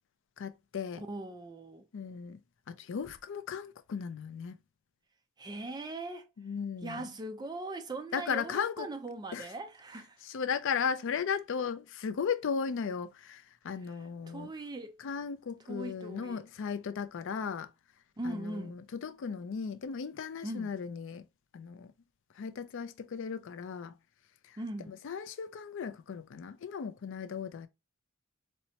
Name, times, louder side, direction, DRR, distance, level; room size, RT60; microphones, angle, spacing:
voice 1, 0.4-1.0 1.9-2.4 2.7-4.6 6.4-7.1 8.1-8.9 9.3-9.5 10.2-14.5 15.0-17.7 18.2-21.2 21.5-21.9 22.3-24.0 24.4-24.6 24.9-27.7, left 6 dB, 60° left, 0.4 m, -36 dB
voice 2, 1.1-1.9 5.4-6.3 6.8-10.2 14.3-15.0 15.7-16.4 18.2-18.8 20.4-20.7 24.6-24.9, right 2 dB, 20° right, 0.4 m, -40 dB
4.2 x 2.1 x 2.7 m
head